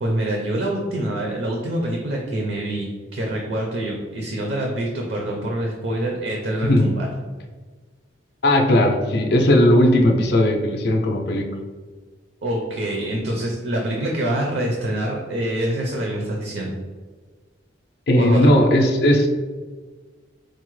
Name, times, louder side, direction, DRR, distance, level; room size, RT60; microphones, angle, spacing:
voice 1, 0.0-7.1 12.4-16.7 18.2-18.5, right 1 dB, 65° right, -1 dB, 0.5 m, -25 dB
voice 2, 8.4-11.5 18.1-19.3, left 1 dB, 55° left, 3 dB, 0.4 m, -17 dB
4.6 x 2.0 x 3.1 m, 1.4 s
head